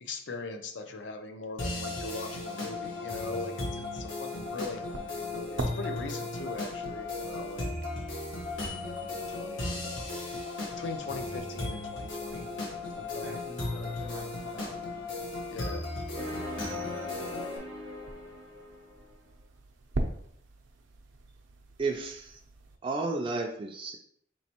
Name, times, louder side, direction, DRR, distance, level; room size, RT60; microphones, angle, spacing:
voice 1, 0.0-7.7 9.0-9.9 10.7-12.5 12.9-13.3 15.5-15.9, left 3 dB, 70° left, 6 dB, 0.5 m, -40 dB
sound 1, 1.6-17.6, left 2 dB, 90° left, 1.1 m, -36 dB
sound 2, 4.4-22.8, right 2 dB, 85° right, 0.5 m, -44 dB
voice 2, 13.2-15.4, equal, 45° left, -6 dB, 0.9 m, -47 dB
sound 3, 16.2-19.1, left 1 dB, 15° left, 0.6 m, -40 dB
voice 3, 21.8-22.4 22.8-24.0, right 3 dB, 25° right, 1 dB, 0.3 m, -32 dB
4.2 x 3.1 x 2.9 m, 0.66 s
head